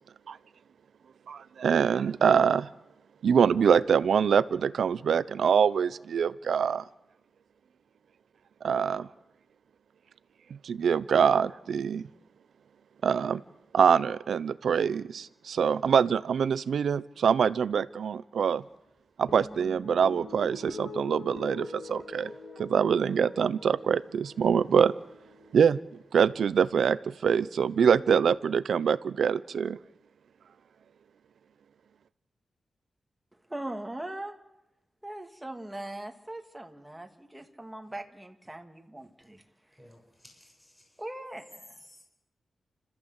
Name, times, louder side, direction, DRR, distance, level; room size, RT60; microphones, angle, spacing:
voice 1, 1.3-2.7 3.2-6.8 8.6-9.1 10.5-12.0 13.0-13.4 13.7-18.6 19.2-22.3 22.6-24.9 25.5-25.8 26.1-29.8, right 7 dB, 85° right, 16 dB, 0.7 m, -24 dB
sound 1, 19.3-25.9, left 3 dB, 50° left, 4.8 m, -44 dB
voice 2, 33.3-34.4 35.0-39.4 39.7-39.8 41.0-41.8, right 1 dB, 10° right, 4 dB, 2.5 m, -40 dB
voice 3, 39.7-41.0 41.8-42.0, left 1 dB, 15° left, 1 dB, 7.2 m, -56 dB
30.0 x 14.0 x 8.1 m, 0.90 s
wide cardioid pair, 100°, 0 cm